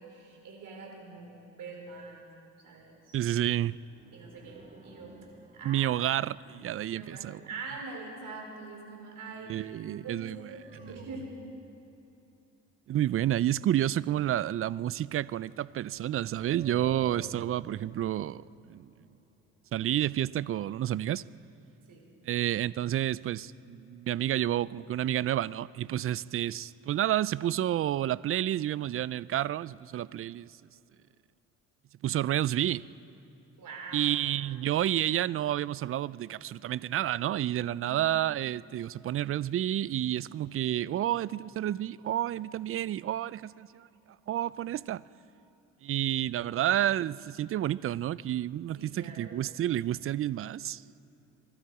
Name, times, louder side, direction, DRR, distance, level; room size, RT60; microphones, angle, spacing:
voice 1, 0.0-2.2 2.6-3.2 4.1-5.2 5.5-5.9 6.8-9.6 10.0-11.3 21.9-22.0 33.6-34.1 37.8-38.0 48.7-49.3, right 4 dB, 65° right, 4.3 m, -44 dB
voice 2, 3.1-3.8 5.6-7.4 9.5-10.5 12.9-18.4 18.7-18.9 19.7-21.2 22.2-30.6 32.0-32.9 33.9-43.9 44.3-45.0 45.8-50.8, right 12 dB, 40° right, 0.4 m, -30 dB
sound 1, 3.7-6.8 10.1-11.8 14.2-20.2 20.5-20.6, right 4 dB, 20° right, 1.3 m, -52 dB
23.5 x 12.0 x 4.8 m
supercardioid pair, 70°, 35 cm